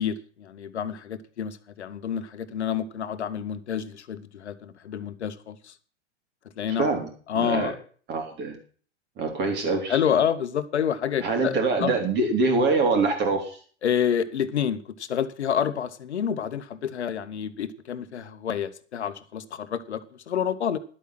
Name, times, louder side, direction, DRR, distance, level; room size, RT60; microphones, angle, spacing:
voice 1, 0.0-5.7 6.6-6.9 7.3-7.7 9.9-11.9 13.8-20.8, left 8 dB, 65° left, 12 dB, 1.1 m, -28 dB
voice 2, 7.3-7.7 8.1-8.6 9.2-10.0 11.2-13.6, right 3 dB, 30° right, 4 dB, 3.6 m, -24 dB
11.5 x 8.3 x 6.1 m, 0.43 s
figure-of-eight pair, 100°, 36 cm